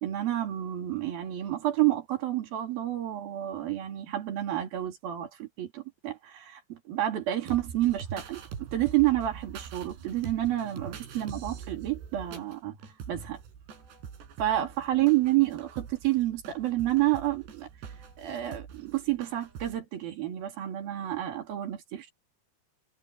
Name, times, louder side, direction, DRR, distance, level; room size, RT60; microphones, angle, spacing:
voice 1, 0.0-13.4 14.4-17.7 18.2-22.1, right 14 dB, 60° right, 4.5 m, -29 dB
sound 1, 7.5-19.8, right 7 dB, 90° right, 5.7 m, -44 dB
omnidirectional pair, 4.8 m